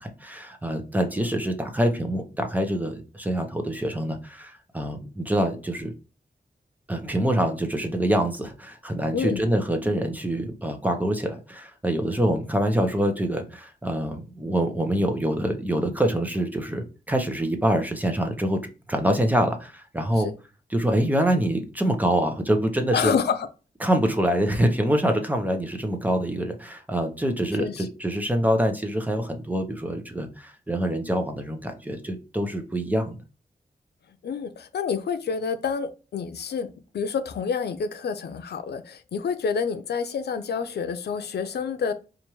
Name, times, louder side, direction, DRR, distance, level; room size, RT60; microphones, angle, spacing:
voice 1, 0.0-5.9 6.9-18.6 18.9-20.3 20.7-23.1 23.8-33.2, right 1 dB, 10° right, 0.7 m, -25 dB
voice 2, 9.1-9.4 20.2-20.3 22.9-23.5 27.6-27.9 34.2-41.9, left 6 dB, 90° left, 0.5 m, -28 dB
4.4 x 2.5 x 3.0 m
wide cardioid pair, 105°, 17 cm